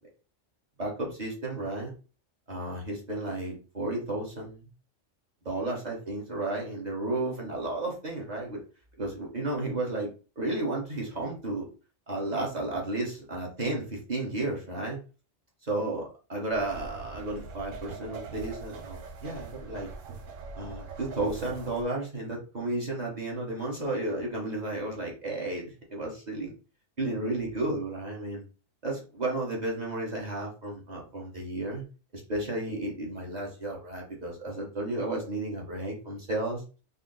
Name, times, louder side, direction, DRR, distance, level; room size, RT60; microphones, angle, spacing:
voice 1, 0.8-1.9 2.5-4.7 5.4-8.6 9.0-10.1 10.4-11.7 12.1-15.0 15.6-19.9 20.5-26.5 27.0-28.4 28.8-31.8 32.1-36.6, right 2 dB, 35° right, -2 dB, 1.3 m, -33 dB
sound 1, 16.5-21.8, right 4 dB, 85° right, 1.0 m, -42 dB
4.1 x 2.1 x 3.9 m, 0.34 s
omnidirectional pair, 1.3 m